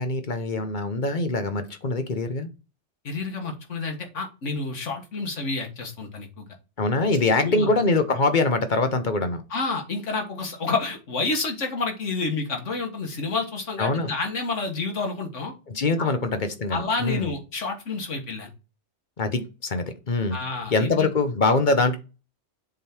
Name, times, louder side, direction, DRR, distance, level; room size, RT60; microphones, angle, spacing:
voice 1, 0.0-2.5 6.8-9.4 13.8-14.1 15.7-17.3 19.2-20.4 20.7-22.0, left 3 dB, 45° left, 1.0 m, -24 dB
voice 2, 3.0-6.5 7.4-7.7 9.5-15.5 16.0-16.1 16.7-18.5 20.3-21.1, left 3 dB, 85° left, 1.9 m, -29 dB
7.3 x 3.7 x 4.4 m
omnidirectional pair, 1.2 m